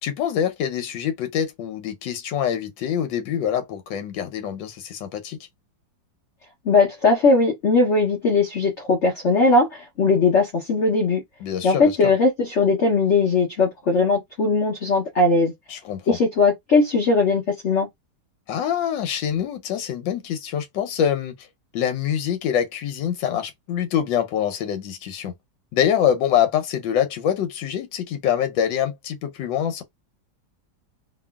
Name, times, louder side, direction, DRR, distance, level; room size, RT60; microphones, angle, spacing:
voice 1, 0.0-5.4 11.4-12.1 15.7-16.2 18.5-21.4 21.7-25.3 25.7-29.8, left 9 dB, 85° left, 1.4 m, -25 dB
voice 2, 6.7-11.2 11.6-15.5 16.1-17.9, left 3 dB, 55° left, 0.9 m, -19 dB
2.9 x 2.6 x 2.2 m
omnidirectional pair, 2.0 m